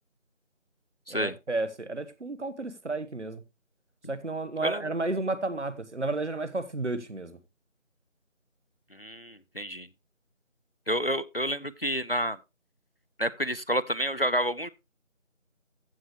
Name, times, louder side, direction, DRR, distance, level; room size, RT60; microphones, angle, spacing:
voice 1, 1.1-3.4 4.1-7.4, right 2 dB, 60° right, 1.2 m, -32 dB
voice 2, 8.9-9.9 10.9-12.4 13.2-14.7, equal, 50° left, 0.5 m, -29 dB
15.0 x 6.7 x 3.0 m
figure-of-eight pair, 175°, 39 cm